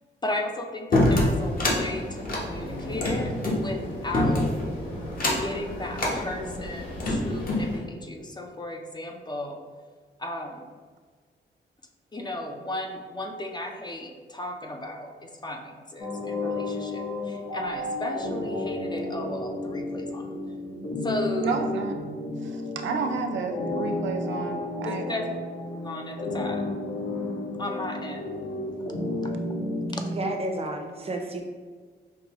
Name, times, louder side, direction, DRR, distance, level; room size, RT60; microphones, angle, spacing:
voice 1, 0.2-4.6 5.3-9.6 10.2-10.7 12.1-20.4 21.0-21.6 24.8-25.3 25.8-26.6 27.6-28.3 30.0-30.1, left 1 dB, 20° left, 3 dB, 0.4 m, -35 dB
sound 1, 0.9-1.8 2.2-3.6 4.1-4.6 5.1-5.5 5.9-6.2 6.8-7.7, left 1 dB, 50° left, 0.9 m, -24 dB
sound 2, 1.4-7.8, equal, 90° left, 1.4 m, -37 dB
sound 3, 16.0-30.2, left 2 dB, 70° left, 1.2 m, -32 dB
voice 2, 21.4-22.0 22.8-25.0, right 5 dB, 80° right, 4 dB, 0.4 m, -30 dB
voice 3, 30.1-31.4, right 2 dB, 30° right, 3 dB, 0.6 m, -31 dB
5.3 x 2.2 x 2.9 m, 1.5 s
cardioid pair, 90°, 19 cm